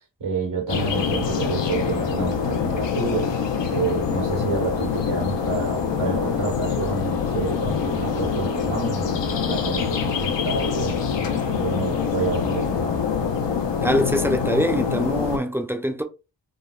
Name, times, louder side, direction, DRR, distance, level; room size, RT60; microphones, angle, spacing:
voice 1, 0.2-3.4 3.7-13.0, right 4 dB, 80° right, 1.4 m, -29 dB
sound 1, 0.7-15.4, left 6 dB, 70° left, 0.7 m, -25 dB
voice 2, 13.8-16.0, equal, 5° right, 0.5 m, -23 dB
3.5 x 2.1 x 2.3 m
cardioid pair, 55°, 44 cm